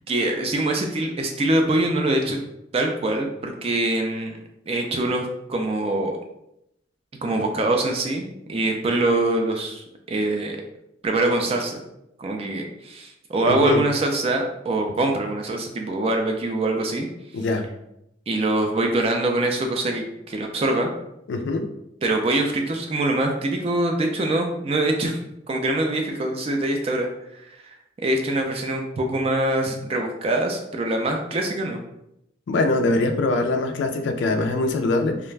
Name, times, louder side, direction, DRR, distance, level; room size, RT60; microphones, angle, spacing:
voice 1, 0.1-2.4 2.7-4.3 4.7-6.2 7.2-10.6 11.0-11.8 12.2-17.1 18.3-20.9 22.0-25.2 25.5-27.1 27.5-27.7 28.0-31.8, right 2 dB, 30° right, 3 dB, 0.3 m, -24 dB
voice 2, 13.4-13.8 17.3-17.7 21.3-21.7 29.7-29.8 32.5-35.3, left 2 dB, 65° left, 6 dB, 0.3 m, -23 dB
2.4 x 2.1 x 3.2 m, 0.82 s
head